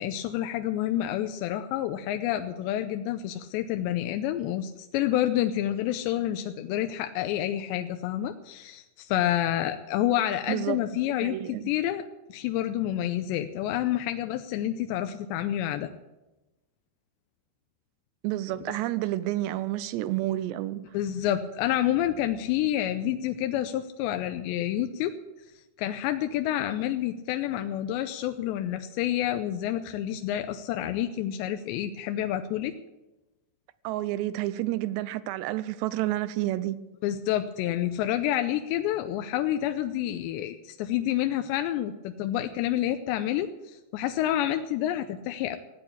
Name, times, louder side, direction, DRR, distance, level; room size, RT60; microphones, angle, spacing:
voice 1, 0.0-15.9 20.9-25.1 25.8-32.7 37.0-45.6, left 12 dB, 85° left, 2.9 m, -28 dB
voice 2, 10.5-10.8 11.2-11.6 18.2-20.8 33.8-36.8, right 15 dB, 85° right, 2.8 m, -29 dB
15.5 x 8.9 x 8.4 m
omnidirectional pair, 5.0 m